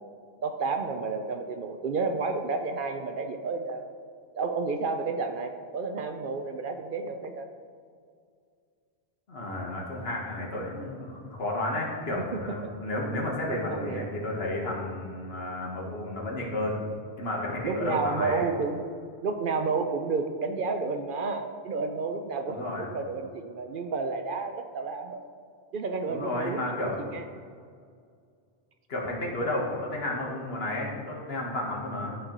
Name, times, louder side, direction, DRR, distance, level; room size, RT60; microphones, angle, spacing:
voice 1, 0.4-3.9 4.3-7.5 12.1-12.7 13.7-14.1 17.6-19.0 19.2-25.2 25.7-27.2, right 4 dB, 60° right, 6 dB, 0.7 m, -31 dB
voice 2, 9.3-16.8 17.2-18.4 22.5-22.9 26.1-27.0 28.9-32.2, left 1 dB, 70° left, -2 dB, 1.7 m, -32 dB
12.5 x 4.5 x 3.9 m, 2.2 s
omnidirectional pair, 1.1 m